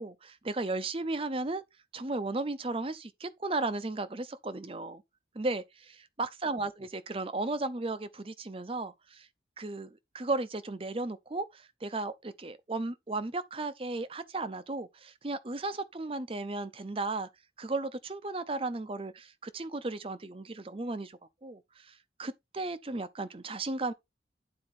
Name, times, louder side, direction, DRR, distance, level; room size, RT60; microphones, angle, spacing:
voice 1, 0.0-1.6 1.9-5.0 5.3-9.3 9.6-17.3 17.6-23.9, right 2 dB, 30° right, 0.6 m, -35 dB
9.6 x 4.3 x 4.2 m
head